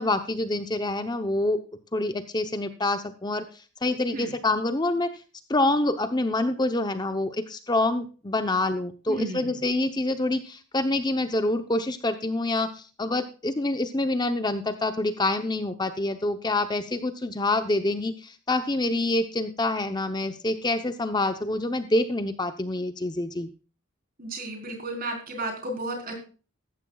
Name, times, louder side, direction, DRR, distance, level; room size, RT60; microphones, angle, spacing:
voice 1, 0.0-1.6 1.9-3.4 3.8-5.1 5.5-23.5, left 2 dB, 20° left, 9 dB, 0.7 m, -26 dB
voice 2, 9.1-9.6 24.2-26.1, right 2 dB, 45° right, 2 dB, 3.9 m, -33 dB
15.0 x 13.5 x 2.3 m, 0.36 s
head